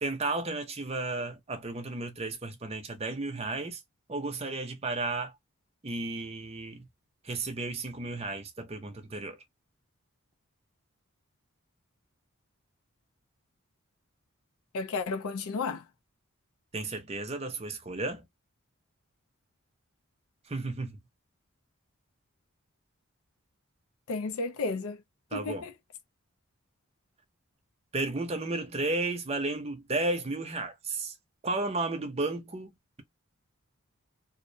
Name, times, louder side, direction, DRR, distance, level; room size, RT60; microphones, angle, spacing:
voice 1, 0.0-3.8 4.1-5.3 5.8-6.9 7.2-9.4 16.7-18.3 20.5-21.0 25.3-25.6 27.9-31.1 31.4-32.7, right 2 dB, 30° right, 0.6 m, -33 dB
voice 2, 14.7-15.8 24.1-25.0 25.3-25.7, left 4 dB, 75° left, 0.4 m, -32 dB
2.6 x 2.0 x 2.6 m
head